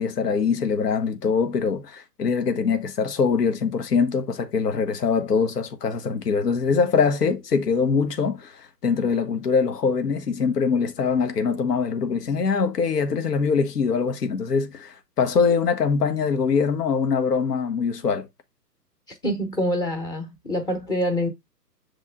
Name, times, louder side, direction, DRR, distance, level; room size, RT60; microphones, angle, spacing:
voice 1, 0.0-18.3, left 5 dB, 70° left, 1.2 m, -23 dB
voice 2, 19.2-21.3, equal, 10° left, 1.0 m, -25 dB
7.3 x 3.6 x 3.5 m
figure-of-eight pair, 125°, 50 cm